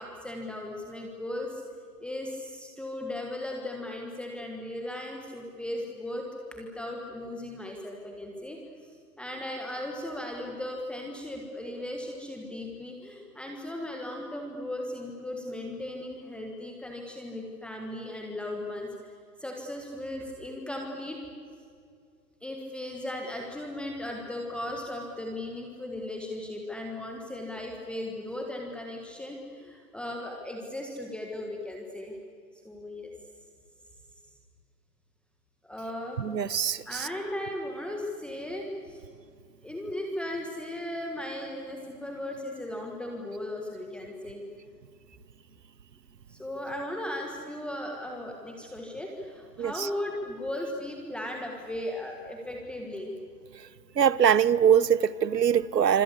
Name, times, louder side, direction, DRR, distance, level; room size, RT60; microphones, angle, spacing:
voice 1, 0.0-1.6 2.0-8.6 9.2-18.9 19.4-21.2 22.4-32.2 32.6-33.1 35.6-36.2 36.8-39.0 39.6-44.4 46.3-53.1, left 1 dB, ahead, 1.5 m, -37 dB
voice 2, 36.2-37.1 49.6-49.9 54.0-56.0, right 8 dB, 80° right, 1.1 m, -23 dB
26.0 x 25.5 x 8.3 m
hypercardioid pair, 145°, 49 cm